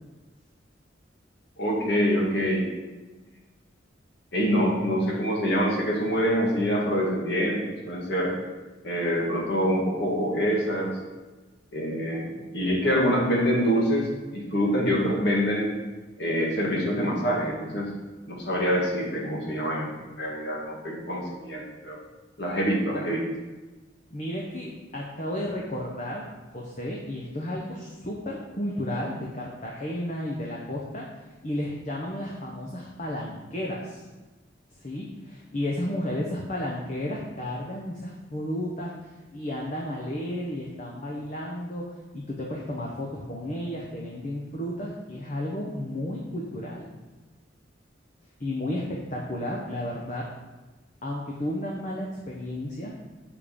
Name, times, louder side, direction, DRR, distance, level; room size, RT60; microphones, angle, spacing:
voice 1, 1.6-2.7 4.3-8.3 8.8-11.0 11.7-14.1 14.3-15.7 16.2-17.9 18.3-22.0 22.4-23.2, equal, 60° left, -2 dB, 1.8 m, -25 dB
voice 2, 24.1-31.1 31.4-34.0 34.7-38.9 39.3-41.8 42.1-46.9 48.4-50.3 51.0-52.9, left 1 dB, 40° left, -2 dB, 0.9 m, -33 dB
7.4 x 5.2 x 5.2 m, 1.2 s
head